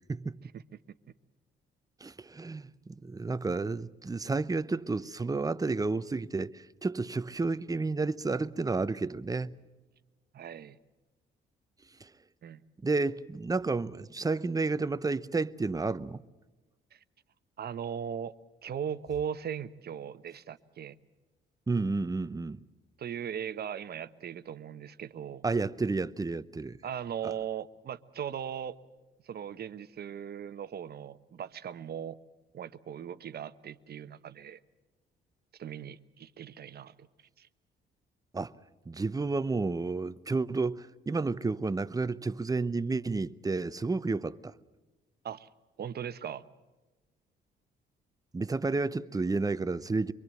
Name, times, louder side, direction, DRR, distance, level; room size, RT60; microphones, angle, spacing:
voice 1, 0.1-0.4 2.0-9.6 12.0-12.1 12.8-16.2 21.7-22.6 25.4-26.8 38.3-38.5 38.9-44.5 48.3-50.1, right 3 dB, 20° right, 0.8 m, -31 dB
voice 2, 10.3-10.8 12.4-12.6 16.9-17.0 17.6-18.3 18.6-21.0 23.0-25.4 26.8-28.8 29.2-32.2 32.5-34.6 35.5-37.1 37.4-37.5 45.2-45.5 45.8-46.4, right 8 dB, 55° right, 1.0 m, -38 dB
25.5 x 23.0 x 7.7 m
cardioid pair, 90°, 20 cm